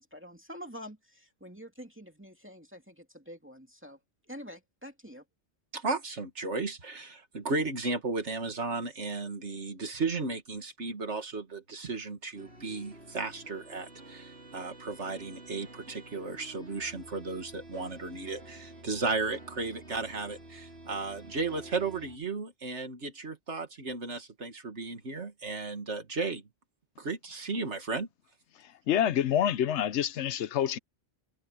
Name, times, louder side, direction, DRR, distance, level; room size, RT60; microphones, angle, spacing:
voice 1, 0.0-4.0 4.3-5.2, equal, 10° right, 2.5 m, -47 dB
voice 2, 5.7-26.4 27.0-28.1, right 3 dB, 85° right, 2.3 m, -34 dB
sound 1, 12.3-22.2, right 2 dB, 65° right, 4.7 m, -50 dB
voice 3, 28.6-30.8, left 10 dB, 80° left, 1.0 m, -27 dB
omnidirectional pair, 1.2 m